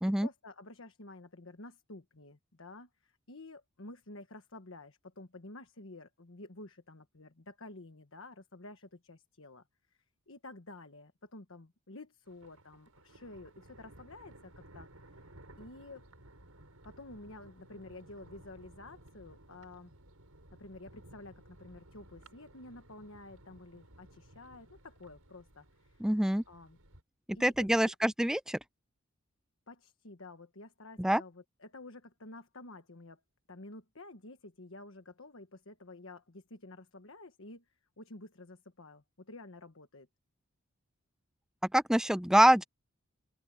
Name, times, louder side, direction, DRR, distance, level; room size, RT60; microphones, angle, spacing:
voice 1, 0.0-10.0 10.3-14.9 15.2-15.3 15.6-16.0 16.8-19.9 20.6-26.1 26.5-26.8 27.3-28.1 29.7-33.2 33.5-40.1, left 2 dB, 65° left, 1.4 m, -51 dB
Thunder, 12.2-27.0, right 1 dB, 80° right, 5.5 m, -57 dB
voice 2, 26.0-26.4 27.4-28.6 31.0-31.2 41.7-42.6, right 1 dB, 5° right, 0.3 m, -25 dB
open air
head